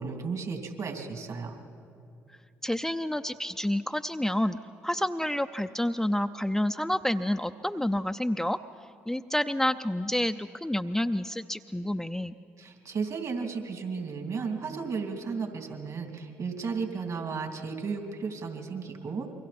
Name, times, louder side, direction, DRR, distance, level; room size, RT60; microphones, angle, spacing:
voice 1, 0.0-1.6 12.6-19.3, right 5 dB, 55° right, 4 dB, 3.0 m, -34 dB
voice 2, 2.6-8.6 9.1-12.3, left 1 dB, 5° left, 8 dB, 0.6 m, -29 dB
28.0 x 23.0 x 4.4 m, 2.6 s
hypercardioid pair, 50°, 7 cm